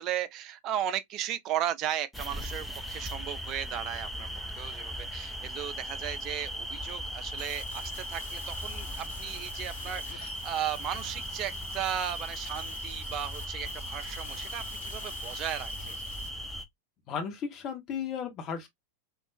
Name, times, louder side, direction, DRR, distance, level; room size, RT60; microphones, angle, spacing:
voice 1, 0.0-4.3 4.6-15.9, right 11 dB, 35° right, 0.5 m, -35 dB
sound 1, 2.1-16.6, equal, 5° left, 0.7 m, -38 dB
sound 2, 7.4-16.3, left 4 dB, 65° left, 0.9 m, -47 dB
voice 2, 17.1-18.7, left 7 dB, 35° left, 1.3 m, -35 dB
3.5 x 2.9 x 2.5 m
figure-of-eight pair, 90°, 0 cm